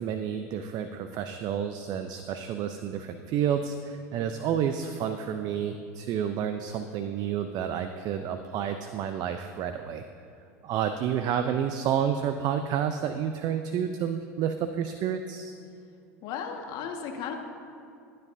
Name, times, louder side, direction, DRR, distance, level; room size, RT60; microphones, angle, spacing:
voice 1, 0.0-10.1 10.6-15.5, right 8 dB, 50° right, 8 dB, 0.7 m, -30 dB
voice 2, 16.2-17.4, left 7 dB, 55° left, 3 dB, 1.7 m, -35 dB
22.0 x 10.0 x 2.8 m, 2.5 s
hypercardioid pair, 80°, 9 cm